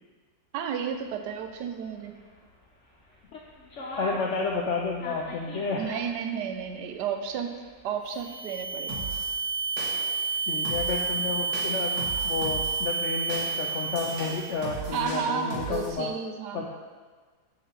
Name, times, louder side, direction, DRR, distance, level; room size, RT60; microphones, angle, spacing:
voice 1, 0.5-2.1 5.8-7.5 7.8-9.0 14.9-16.7, right 7 dB, 85° right, 6 dB, 1.2 m, -32 dB
sound 1, 0.9-14.8, left 1 dB, 50° left, 1.4 m, -47 dB
voice 2, 4.0-5.8 10.4-16.1 16.5-16.7, left 4 dB, 75° left, -1 dB, 0.6 m, -31 dB
sound 2, 8.1-14.7, right 4 dB, 50° right, 1.3 m, -30 dB
sound 3, 8.9-9.3 9.8-10.2 10.6-11.1 11.5-12.8 13.3-15.9, right 2 dB, 70° right, 1.8 m, -38 dB
6.7 x 6.3 x 2.9 m, 1.5 s
omnidirectional pair, 1.8 m